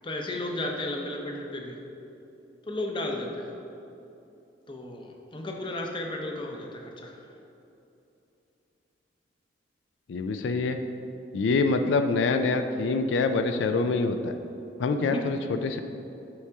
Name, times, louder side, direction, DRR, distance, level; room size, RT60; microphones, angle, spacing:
voice 1, 0.0-1.8 2.7-3.6 4.7-7.2 15.0-15.2, left 1 dB, 25° left, 1 dB, 0.6 m, -34 dB
voice 2, 10.1-10.8 11.3-14.3 14.8-15.8, left 3 dB, 85° left, 7 dB, 0.4 m, -25 dB
8.4 x 4.8 x 3.5 m, 2.8 s
head